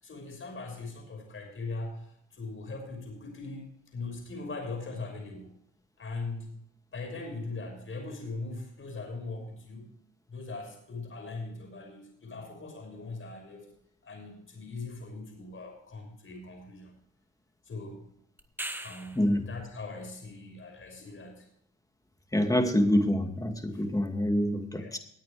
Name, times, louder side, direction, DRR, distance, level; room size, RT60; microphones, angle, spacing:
voice 1, 0.0-5.5 6.0-6.6 6.9-9.9 10.3-13.7 14.0-16.9 17.7-18.1 18.8-21.5 23.7-23.8 24.8-24.9, left 3 dB, 45° left, 2 dB, 6.0 m, -40 dB
sound 1, 18.4-19.4 24.0-24.1, right 1 dB, 5° right, 1.5 m, -39 dB
voice 2, 22.3-25.0, equal, 10° left, 5 dB, 2.3 m, -26 dB
19.5 x 9.0 x 3.4 m, 0.70 s
cardioid pair, 90°, 30 cm